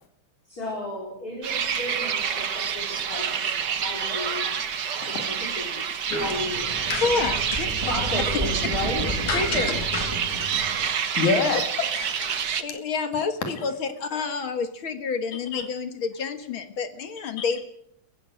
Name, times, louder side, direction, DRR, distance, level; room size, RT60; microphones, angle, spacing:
voice 1, 0.5-4.5 5.0-6.6 7.8-9.1 9.5-10.1 11.9-12.2, left 1 dB, 30° left, -1 dB, 5.0 m, -34 dB
sound 1, 1.4-12.6, right 7 dB, 50° right, 1.3 m, -28 dB
sound 2, 6.1-10.9, right 1 dB, 10° right, 4.5 m, -32 dB
voice 2, 7.0-7.7 9.3-9.8 12.6-17.6, left 5 dB, 50° left, 9 dB, 2.0 m, -28 dB
voice 3, 9.3-9.6 9.9-11.6 13.5-13.6 15.5-15.7 17.4-17.5, left 4 dB, 75° left, 6 dB, 3.9 m, -28 dB
30.0 x 15.0 x 6.3 m, 0.73 s
omnidirectional pair, 3.5 m